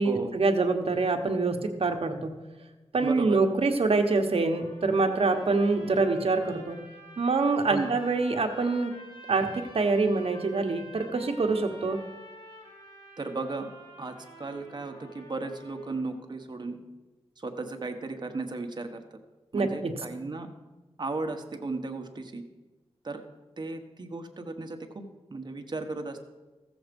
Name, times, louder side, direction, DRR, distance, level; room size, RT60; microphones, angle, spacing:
voice 1, 0.0-2.3 2.9-6.8 7.2-8.9 9.3-12.0 19.5-19.9, right 3 dB, 60° right, 5 dB, 1.2 m, -25 dB
voice 2, 3.0-3.4 7.7-7.9 13.2-13.7 14.0-16.8 17.4-19.2 19.5-20.5 21.0-22.4 23.0-23.2 23.6-24.8 25.3-26.2, right 3 dB, 40° right, 5 dB, 1.2 m, -35 dB
sound 1, 4.5-16.1, left 1 dB, 45° left, 3.8 m, -49 dB
14.5 x 7.2 x 5.3 m, 1.2 s
wide cardioid pair, 85°, 11 cm